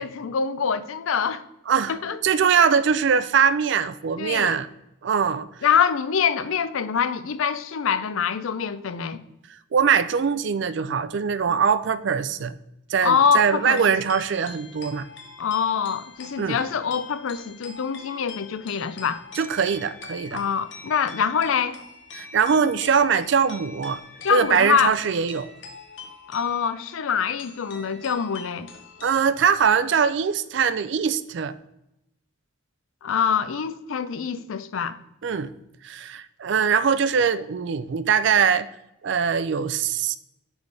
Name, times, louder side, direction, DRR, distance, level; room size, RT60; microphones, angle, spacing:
voice 1, 0.0-1.4 1.9-2.2 4.2-4.6 5.6-9.2 13.0-13.8 15.4-19.2 20.3-21.8 24.2-24.9 26.3-28.7 33.0-35.0, left 7 dB, 80° left, 0.4 m, -24 dB
voice 2, 2.2-4.7 5.0-5.5 9.7-12.5 12.9-15.1 16.4-16.6 19.4-20.4 22.1-24.0 24.3-25.5 29.0-31.6 35.2-35.5 35.8-38.7 39.0-40.2, right 6 dB, 60° right, 0.4 m, -22 dB
sound 1, 13.6-29.2, left 4 dB, 60° left, 1.0 m, -44 dB
6.2 x 5.2 x 3.2 m
head